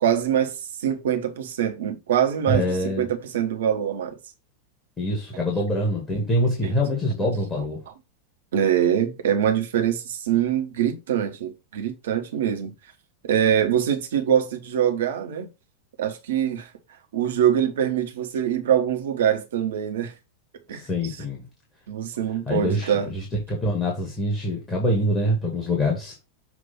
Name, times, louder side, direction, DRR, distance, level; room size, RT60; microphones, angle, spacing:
voice 1, 0.0-4.2 6.6-6.7 7.5-7.6 8.5-12.7 13.2-15.5 16.0-16.7 17.1-20.1 20.7-21.2 21.9-23.1, right 9 dB, 60° right, 1.2 m, -24 dB
voice 2, 2.5-3.1 5.0-7.8 20.7-21.4 22.5-26.2, left 1 dB, 15° left, 2.2 m, -25 dB
7.2 x 3.0 x 5.5 m
figure-of-eight pair, 90°, 0 cm